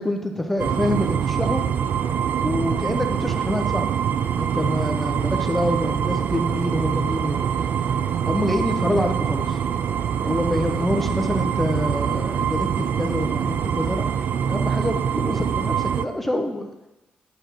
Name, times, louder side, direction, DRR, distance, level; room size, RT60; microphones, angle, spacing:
voice 1, 0.0-1.6 2.4-3.9 4.3-7.4 8.2-9.6 10.2-14.1 14.5-16.7, left 1 dB, 5° left, 4 dB, 0.7 m, -26 dB
sound 1, 0.6-16.1, right 8 dB, 60° right, 0.3 m, -24 dB
10.5 x 5.3 x 3.0 m, 0.98 s
cardioid pair, 130°, 3 cm